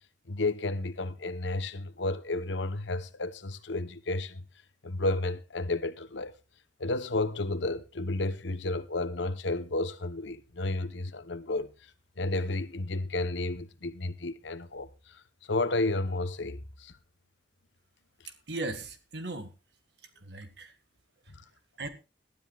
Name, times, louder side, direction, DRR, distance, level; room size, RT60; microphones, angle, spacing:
voice 1, 0.3-4.4 4.8-6.3 6.8-11.9 12.2-15.2 15.5-16.9 21.3-21.4, left 2 dB, 75° left, 1.0 m, -32 dB
voice 2, 18.3-19.5 20.1-20.7 21.8-21.9, right 2 dB, 65° right, 1.7 m, -38 dB
20.5 x 12.5 x 2.4 m
head